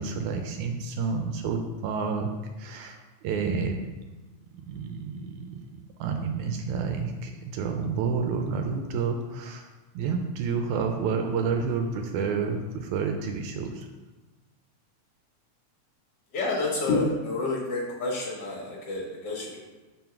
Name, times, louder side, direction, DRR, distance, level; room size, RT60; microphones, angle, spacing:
voice 1, 0.0-2.3 2.6-3.8 4.7-5.7 6.0-9.7 10.0-13.9, right 5 dB, 80° right, 4 dB, 1.8 m, -29 dB
voice 2, 16.3-19.6, left 2 dB, 50° left, -4 dB, 1.3 m, -29 dB
4.5 x 4.0 x 5.7 m, 1.2 s
omnidirectional pair, 3.6 m